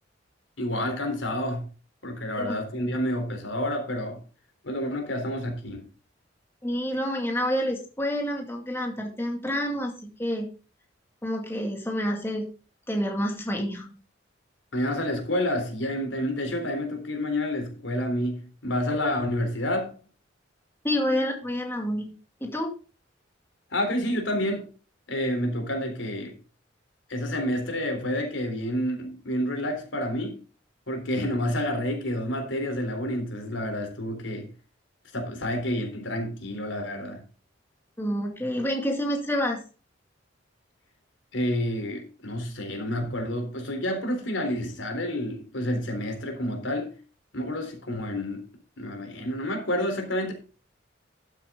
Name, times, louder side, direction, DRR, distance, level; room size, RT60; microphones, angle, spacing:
voice 1, 0.6-1.7 2.0-4.2 4.6-5.9 14.7-19.9 23.7-24.7 25.1-26.4 27.1-30.4 30.9-34.5 35.1-37.2 41.3-47.0 47.3-48.5 48.8-50.3, left 1 dB, 85° left, 3.6 m, -29 dB
voice 2, 6.6-10.5 11.2-12.5 12.9-13.9 20.8-22.7 38.0-39.6, equal, 15° left, 2.1 m, -28 dB
12.5 x 7.7 x 3.7 m
head